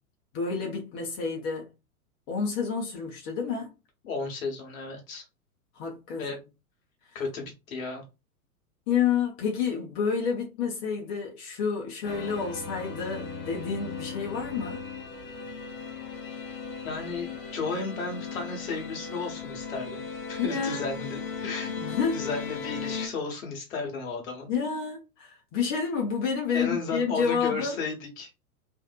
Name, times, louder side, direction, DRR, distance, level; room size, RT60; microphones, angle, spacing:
voice 1, 0.3-1.7 2.3-3.7 5.7-6.3 8.9-14.8 20.4-20.9 21.8-22.2 24.5-27.8, left 6 dB, 40° left, 1.0 m, -29 dB
voice 2, 4.0-5.2 6.1-6.4 7.1-8.0 16.8-20.0 20.3-21.7 22.1-24.5 26.5-28.3, left 4 dB, 60° left, 1.2 m, -34 dB
sound 1, 12.0-23.1, left 5 dB, 20° left, 0.4 m, -37 dB
2.6 x 2.5 x 2.3 m
figure-of-eight pair, 95°, 45 cm